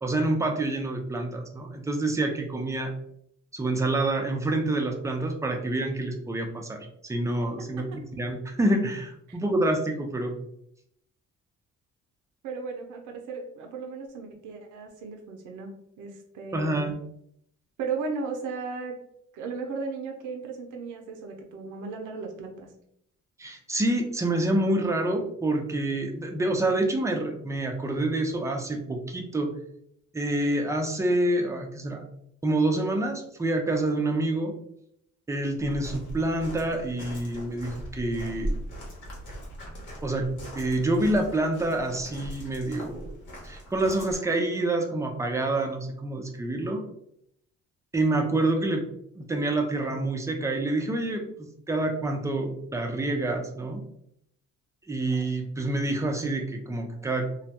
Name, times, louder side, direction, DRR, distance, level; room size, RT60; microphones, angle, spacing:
voice 1, 0.0-2.9 3.5-7.8 8.2-10.3 16.5-17.0 23.4-29.5 30.1-32.0 32.4-34.5 35.3-38.5 40.0-40.3 40.6-43.1 43.4-46.8 47.9-48.8 49.1-51.2 51.7-53.8 54.9-57.3, right 2 dB, 10° right, 3 dB, 0.4 m, -27 dB
voice 2, 7.6-8.0 9.3-9.4 12.4-15.7 16.0-16.9 17.8-19.0 19.3-22.7, right 4 dB, 85° right, 2 dB, 0.5 m, -36 dB
Walk footsteps, 35.6-44.2, right 1 dB, 80° left, 1.0 m, -39 dB
2.2 x 2.0 x 2.8 m, 0.74 s
cardioid pair, 90°, 30 cm